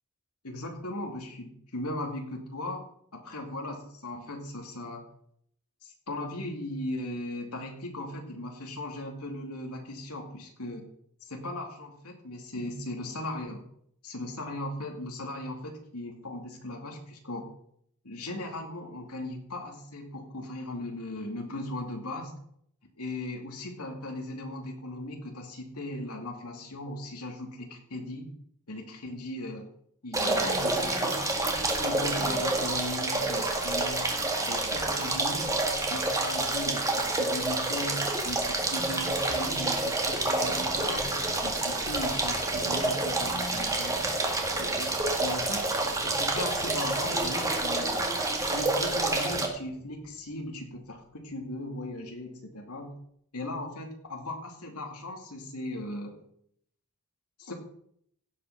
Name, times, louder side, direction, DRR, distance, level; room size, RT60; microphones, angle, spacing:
voice 1, 0.4-2.8 3.1-5.1 5.8-10.9 11.2-13.7 14.0-17.5 18.0-22.3 23.0-28.3 28.7-29.7 30.0-34.2 34.5-35.5 35.9-41.1 41.4-44.1 44.6-48.2 48.4-52.9 53.3-56.2 57.4-57.5, left 1 dB, 85° left, 2 dB, 2.4 m, -38 dB
sound 1, 30.1-49.5, right 2 dB, 15° right, 1.8 m, -28 dB
sound 2, 40.0-51.3, right 1 dB, 40° right, 2.7 m, -47 dB
16.5 x 5.9 x 5.8 m, 0.68 s
head